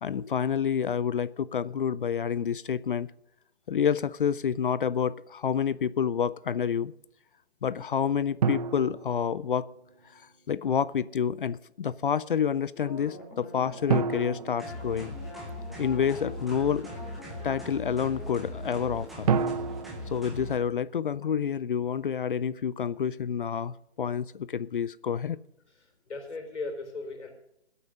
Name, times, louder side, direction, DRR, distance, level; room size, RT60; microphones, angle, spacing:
voice 1, 0.0-3.1 3.7-6.9 7.6-9.7 10.1-10.2 10.5-15.2 15.8-16.9 17.4-19.3 20.1-25.4, left 7 dB, 50° left, 19 dB, 0.5 m, -28 dB
sound 1, 8.4-10.0 13.9-15.8 19.3-21.5, right 6 dB, 35° right, 0.8 m, -31 dB
sound 2, 12.8-19.1, left 1 dB, 20° left, 3.7 m, -45 dB
sound 3, 14.6-20.6, left 1 dB, ahead, 0.5 m, -40 dB
voice 2, 25.8-27.3, left 3 dB, 85° left, 3 dB, 4.5 m, -37 dB
18.0 x 8.4 x 6.6 m, 0.79 s
hypercardioid pair, 155°, 33 cm